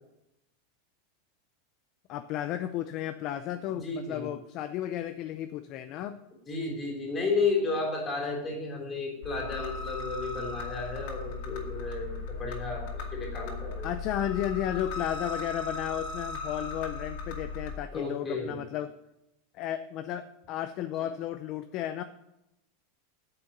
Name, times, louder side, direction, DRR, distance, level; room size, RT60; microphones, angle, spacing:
voice 1, 2.1-6.2 13.8-18.9 19.5-22.0, left 11 dB, 40° left, 9 dB, 0.5 m, -33 dB
voice 2, 3.7-4.3 6.5-13.9 17.9-18.6 21.0-21.1, left 3 dB, 20° left, 0 dB, 3.3 m, -33 dB
sound 1, 9.2-17.7, left 3 dB, 55° left, 2.4 m, -37 dB
8.9 x 6.9 x 8.5 m, 0.89 s
supercardioid pair, 160°, 0 cm